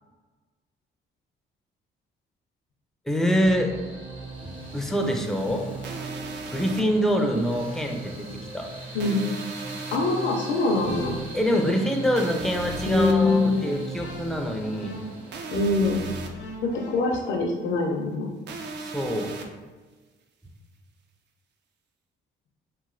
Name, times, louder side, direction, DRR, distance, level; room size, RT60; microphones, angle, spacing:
voice 1, 3.1-3.7 4.4-5.7 6.5-8.3 8.5-8.7 11.3-15.0 18.8-19.3, equal, ahead, 2 dB, 0.4 m, -25 dB
sound 1, 3.4-15.4, right 3 dB, 90° right, 1.2 m, -39 dB
sound 2, 5.8-6.8 9.0-10.0 12.2-13.1 15.3-16.3 18.5-19.5, right 3 dB, 60° right, 0.4 m, -37 dB
voice 2, 9.9-11.2 12.9-13.6 15.5-16.0 16.6-18.3, left 3 dB, 70° left, -1 dB, 0.5 m, -23 dB
sound 3, 10.5-12.1 12.4-17.2, right 1 dB, 90° left, 0.8 m, -40 dB
3.0 x 2.6 x 2.5 m, 1.3 s
cardioid pair, 90°, 20 cm